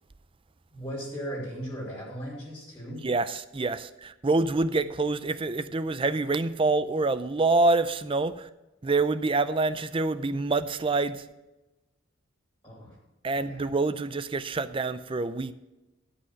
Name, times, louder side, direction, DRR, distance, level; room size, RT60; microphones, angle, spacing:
voice 1, 0.7-3.1 12.6-13.0 13.3-13.7, equal, 20° left, 3.3 m, -37 dB
voice 2, 3.0-8.5 8.8-11.2 13.2-15.5, right 3 dB, 25° right, 0.4 m, -26 dB
12.5 x 5.7 x 6.7 m
head